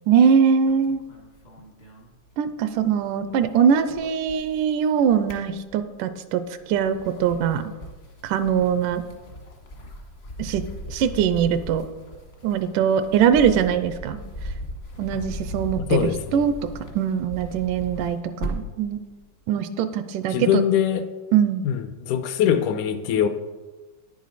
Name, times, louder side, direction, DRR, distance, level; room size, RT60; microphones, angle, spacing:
voice 1, 0.1-1.0 2.4-6.4 6.7-7.7 8.2-9.0 10.4-10.6 10.9-11.9 12.4-14.2 15.0-16.6 16.9-19.0 19.5-20.6 21.3-21.6, right 8 dB, 85° right, 11 dB, 2.1 m, -22 dB
sound 1, 0.6-2.8 3.1-4.7 5.0-6.1 6.6-18.8, equal, 50° left, 0.7 m, -38 dB
voice 2, 15.8-16.4 20.3-21.1 21.6-23.3, left 9 dB, 80° left, 10 dB, 2.0 m, -22 dB
10.0 x 9.5 x 4.1 m, 1.2 s
omnidirectional pair, 3.7 m